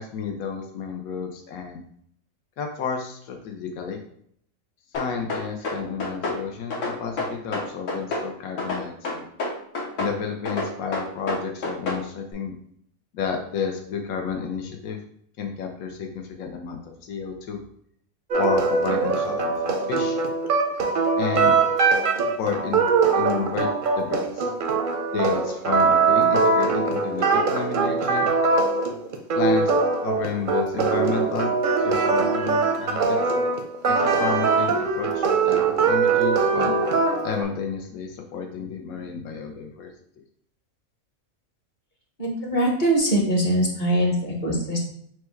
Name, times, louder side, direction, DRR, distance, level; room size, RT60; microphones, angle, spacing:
voice 1, 0.0-1.8 2.6-4.0 4.9-9.3 10.0-12.5 13.1-15.0 15.4-16.8 17.1-17.6 18.4-20.2 21.2-21.6 22.4-22.8 23.1-23.7 24.0-24.5 25.1-28.3 29.3-29.7 30.0-31.5 31.8-33.2 33.9-36.7 37.2-39.9 40.2-40.3, left 6 dB, 90° left, 3 dB, 1.1 m, -31 dB
sound 1, 4.9-6.4 6.7-8.3 8.6-10.2 10.5-12.0, left 2 dB, 65° left, 1.3 m, -28 dB
sound 2, 18.3-37.4, right 4 dB, 55° right, 0.6 m, -22 dB
voice 2, 42.2-44.8, right 1 dB, 40° left, -1 dB, 0.9 m, -22 dB
4.6 x 2.2 x 4.4 m, 0.67 s
omnidirectional pair, 1.4 m